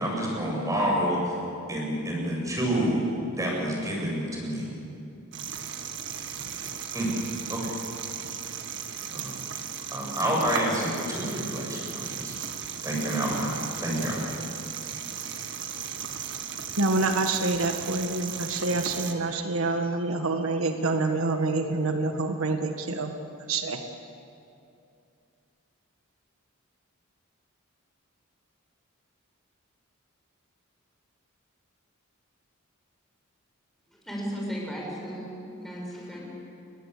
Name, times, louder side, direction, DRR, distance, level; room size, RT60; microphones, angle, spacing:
voice 1, 0.0-1.3 1.7-4.7 6.9-7.1 7.5-7.7 9.1-9.3 9.9-12.3 12.8-14.2, equal, 15° right, -2 dB, 7.8 m, -28 dB
sound 1, 5.3-19.1, right 8 dB, 60° right, 1.8 m, -36 dB
voice 2, 16.8-23.1 23.5-23.8, right 3 dB, 75° right, 5 dB, 1.5 m, -27 dB
voice 3, 34.0-36.2, equal, ahead, -3 dB, 7.4 m, -35 dB
29.5 x 21.5 x 8.4 m, 2.6 s
head